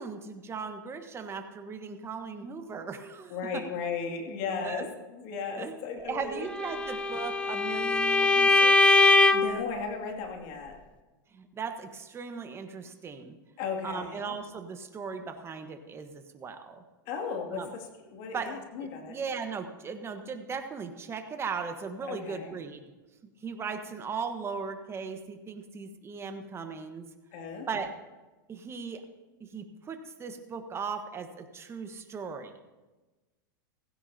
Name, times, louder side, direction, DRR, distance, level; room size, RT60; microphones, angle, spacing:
voice 1, 0.0-3.7 4.6-4.9 5.6-9.0 11.3-13.4 13.8-16.8 17.5-17.7 18.3-18.5 18.8-22.9 23.4-27.1 27.7-27.9 28.5-29.0 29.4-32.5, right 5 dB, 20° right, 7 dB, 1.4 m, -38 dB
voice 2, 3.3-6.5 9.3-10.8 13.6-14.3 17.1-19.2 22.0-22.6 27.3-27.7, left 5 dB, 55° left, 2 dB, 2.6 m, -36 dB
Bowed string instrument, 6.6-9.6, left 3 dB, 10° left, 0.7 m, -22 dB
16.5 x 16.0 x 2.9 m, 1.2 s
hypercardioid pair, 115°, 11 cm